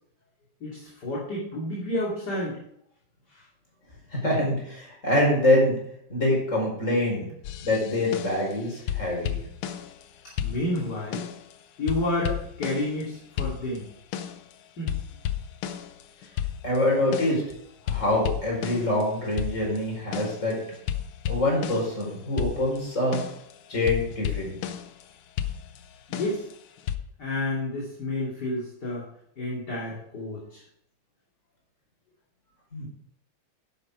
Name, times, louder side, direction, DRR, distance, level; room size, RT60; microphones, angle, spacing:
voice 1, 0.6-2.6 3.3-3.4 10.4-11.3 11.8-13.9 14.8-15.0 26.1-26.5 27.2-29.0 29.4-30.6, left 1 dB, 50° left, -6 dB, 3.1 m, -30 dB
voice 2, 4.1-5.8 6.1-7.3 7.6-9.4 16.6-17.4 17.9-20.6 21.3-23.2 23.7-24.6 32.7-32.9, left 1 dB, 35° left, -2 dB, 5.1 m, -25 dB
sound 1, 7.4-8.6 8.9-10.1 10.4-11.5 11.9-13.1 13.4-14.5 14.9-17.5 17.9-22.1 22.4-25.0 25.4-27.0, left 10 dB, 85° left, 1.7 m, -33 dB
10.5 x 10.0 x 4.8 m, 0.72 s
omnidirectional pair, 2.3 m